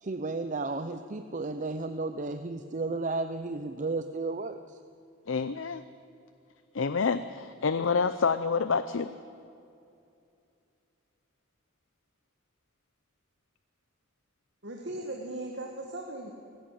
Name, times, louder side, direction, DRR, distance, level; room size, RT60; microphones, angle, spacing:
voice 1, 0.0-4.8, right 3 dB, 40° right, 10 dB, 0.6 m, -33 dB
voice 2, 5.3-5.8 6.7-9.1, left 5 dB, 75° left, 12 dB, 0.6 m, -28 dB
voice 3, 14.6-16.3, right 1 dB, 60° right, 1 dB, 1.9 m, -38 dB
19.0 x 17.0 x 8.5 m, 2.6 s
head